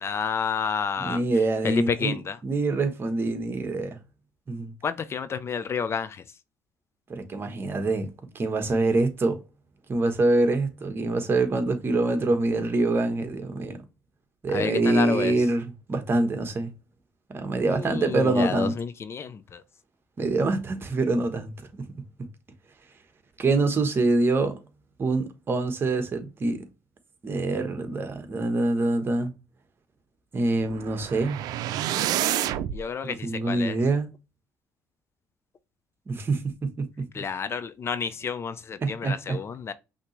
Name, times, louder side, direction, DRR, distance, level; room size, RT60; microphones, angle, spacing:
voice 1, 0.0-1.2 1.6-2.4 4.8-6.2 14.5-15.3 17.7-19.6 32.7-33.8 37.1-39.7, left 6 dB, 40° left, 0.5 m, -30 dB
voice 2, 1.0-2.2 2.4-4.0 4.5-4.7 7.1-9.4 9.9-13.8 14.4-16.7 17.3-18.7 20.2-21.5 23.4-24.6 25.0-26.6 27.2-29.3 30.3-31.4 33.0-34.1 36.1-37.2 38.8-39.4, right 2 dB, 35° right, 1.2 m, -25 dB
sound 1, 30.6-32.8, right 12 dB, 75° right, 0.5 m, -28 dB
5.7 x 2.9 x 3.1 m
cardioid pair, 90°, 7 cm